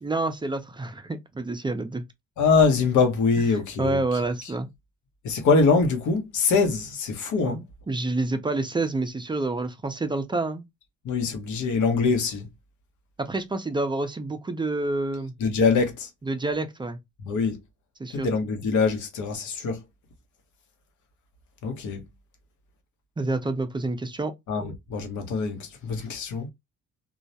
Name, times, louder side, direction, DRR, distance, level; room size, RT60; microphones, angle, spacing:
voice 1, 0.0-2.0 3.8-4.7 7.4-10.6 13.2-15.3 16.3-17.0 18.0-18.3 23.2-24.3, right 2 dB, 15° right, 0.4 m, -28 dB
voice 2, 2.4-4.0 5.2-7.6 11.0-12.5 15.4-16.1 17.2-17.6 18.1-19.8 21.6-22.0 24.5-26.5, left 4 dB, 75° left, 0.8 m, -23 dB
2.3 x 2.0 x 2.7 m
cardioid pair, 90°, 30 cm